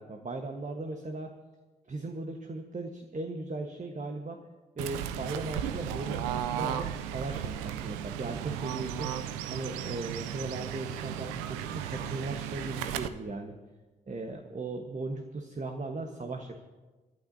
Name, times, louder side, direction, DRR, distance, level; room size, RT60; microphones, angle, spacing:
voice 1, 0.0-1.3 1.9-4.4 4.8-9.1 9.5-13.5 14.1-16.6, right 2 dB, 35° right, 4 dB, 1.3 m, -37 dB
Fowl / Bird, 4.8-13.1, right 10 dB, 90° right, 0.5 m, -35 dB
25.5 x 11.5 x 2.7 m, 1.3 s
hypercardioid pair, 40°, 20 cm